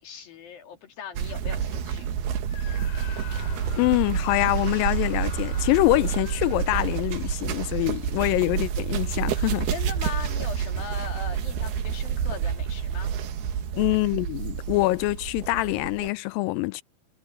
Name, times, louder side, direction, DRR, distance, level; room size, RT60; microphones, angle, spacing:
voice 1, 0.0-2.1 9.7-13.1, left 6 dB, 65° left, 4.3 m, -39 dB
sound 1, 1.2-16.1, right 8 dB, 75° right, 3.6 m, -29 dB
Screaming, 2.5-7.3, left 10 dB, 50° left, 3.7 m, -47 dB
Car, 3.0-11.2, right 1 dB, 15° right, 4.9 m, -43 dB
voice 2, 3.8-9.7 13.8-16.8, left 20 dB, 90° left, 2.0 m, -24 dB
omnidirectional pair, 4.6 m